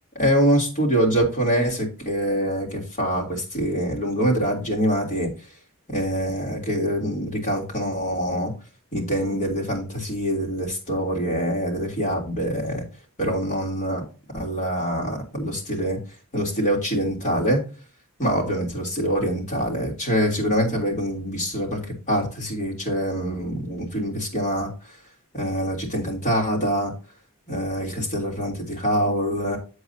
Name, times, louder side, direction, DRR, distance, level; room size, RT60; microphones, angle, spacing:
voice 1, 0.1-5.3 5.9-8.5 8.9-12.8 13.2-14.0 14.3-16.0 16.3-17.6 18.2-21.8 22.1-24.7 25.3-26.9 27.5-29.6, equal, 35° left, -1 dB, 3.3 m, -24 dB
8.2 x 7.9 x 2.8 m, 0.34 s
head